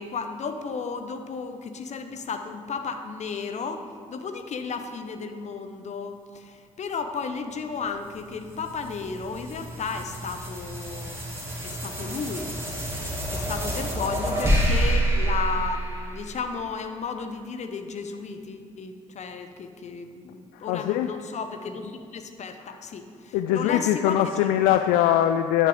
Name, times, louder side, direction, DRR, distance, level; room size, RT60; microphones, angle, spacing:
voice 1, 0.0-11.2 11.6-12.5 13.3-24.2, left 5 dB, 45° left, 7 dB, 0.9 m, -34 dB
sound 1, 8.0-16.6, right 1 dB, 15° right, 2.8 m, -28 dB
voice 2, 20.5-21.2 22.6-22.8 23.3-25.7, left 11 dB, 70° left, 8 dB, 0.4 m, -22 dB
10.0 x 10.0 x 3.8 m, 2.1 s
hypercardioid pair, 45°, 16 cm